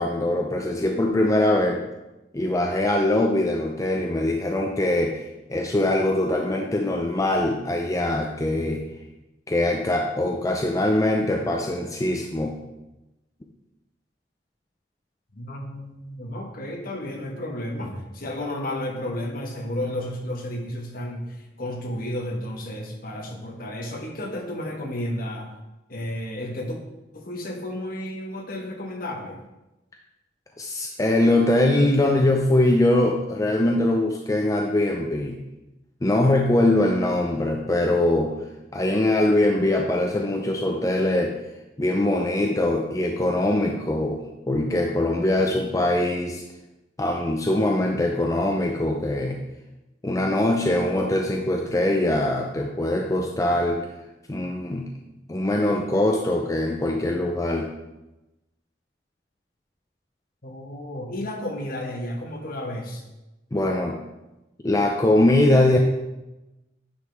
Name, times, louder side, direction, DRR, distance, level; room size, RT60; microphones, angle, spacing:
voice 1, 0.0-1.8 2.3-5.2 5.5-8.8 9.5-12.6 30.6-35.4 36.0-38.3 38.7-41.3 41.8-44.2 44.5-46.4 47.0-49.4 50.0-53.8 54.3-54.9 55.3-57.7 63.5-64.0 64.6-65.8, left 1 dB, 20° left, 1 dB, 0.5 m, -22 dB
voice 2, 15.3-25.5 25.9-26.8 27.1-29.4 60.4-63.0, left 1 dB, 50° left, 1 dB, 1.3 m, -32 dB
9.9 x 5.1 x 3.5 m, 1.0 s
head